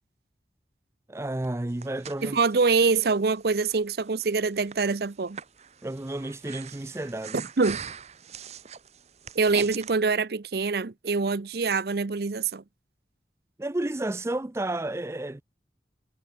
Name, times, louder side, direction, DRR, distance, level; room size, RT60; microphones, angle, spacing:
voice 1, 1.1-2.4 5.8-7.4 13.6-15.4, right 1 dB, 15° right, 0.4 m, -31 dB
Breathing, 1.4-9.9, right 7 dB, 40° right, 1.0 m, -43 dB
voice 2, 2.2-5.4 7.6-7.8 9.4-12.6, right 4 dB, 60° right, 0.6 m, -25 dB
head